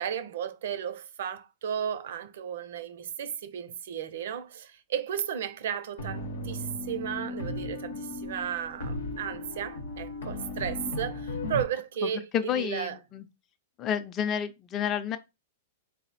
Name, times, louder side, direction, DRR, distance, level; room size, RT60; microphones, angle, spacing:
voice 1, 0.0-13.0, right 8 dB, 70° right, 0.5 m, -34 dB
sound 1, 6.0-11.6, left 2 dB, 85° left, 0.9 m, -36 dB
voice 2, 12.0-13.3 13.8-15.2, left 8 dB, 30° left, 0.5 m, -30 dB
4.2 x 2.0 x 4.0 m
hypercardioid pair, 130°, 0 cm